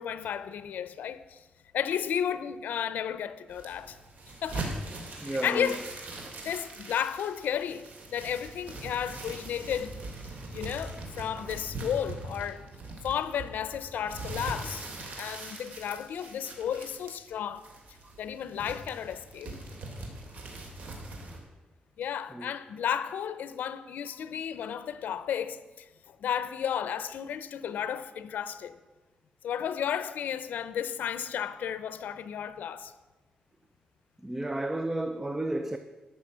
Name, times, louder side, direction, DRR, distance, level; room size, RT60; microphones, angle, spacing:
voice 1, 0.0-1.4 1.7-4.0 4.4-4.7 5.2-5.8 6.4-10.0 10.5-12.6 13.0-14.9 15.2-17.7 18.2-19.5 22.0-28.8 29.4-32.9, left 9 dB, 85° left, 0.7 m, -33 dB
sound 1, 3.5-21.4, right 2 dB, 65° right, 2.9 m, -41 dB
voice 2, 5.2-5.8 18.0-18.1 22.3-22.5 34.2-35.8, right 1 dB, 10° right, 0.6 m, -32 dB
13.0 x 6.3 x 9.6 m
wide cardioid pair, 140°, 3 cm